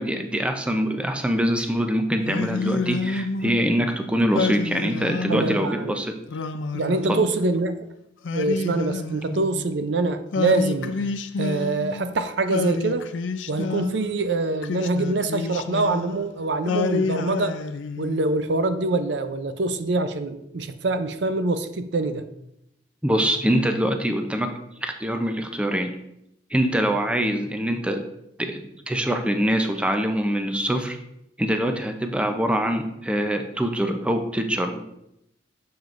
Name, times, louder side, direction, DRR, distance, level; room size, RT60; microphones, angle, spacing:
voice 1, 0.0-6.2 7.1-7.2 23.0-24.5 24.8-25.9 26.5-28.0 28.4-31.0 31.4-34.8, equal, 5° right, 5 dB, 0.5 m, -24 dB
Singing, 2.2-3.7 4.3-5.7 6.3-7.6 8.2-9.8 10.3-12.1 12.5-14.1 14.6-16.3 16.7-18.3, left 4 dB, 90° left, 0.5 m, -29 dB
voice 2, 5.3-6.0 6.7-7.8 8.3-11.0 11.4-13.1 13.5-17.6 18.0-22.2, right 2 dB, 70° right, 10 dB, 0.5 m, -24 dB
9.3 x 6.9 x 2.5 m, 0.82 s
head